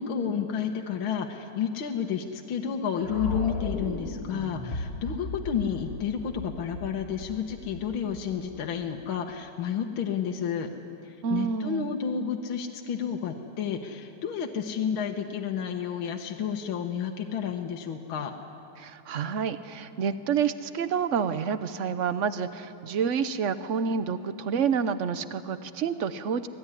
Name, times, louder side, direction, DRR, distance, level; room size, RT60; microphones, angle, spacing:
voice 1, 0.0-10.7 11.3-18.3, left 7 dB, 70° left, 2 dB, 1.9 m, -31 dB
sound 1, 3.0-9.1, left 2 dB, 45° left, 2.0 m, -36 dB
voice 2, 11.2-11.9 18.8-26.5, right 6 dB, 65° right, 12 dB, 0.7 m, -28 dB
26.0 x 19.0 x 9.9 m, 2.7 s
omnidirectional pair, 2.4 m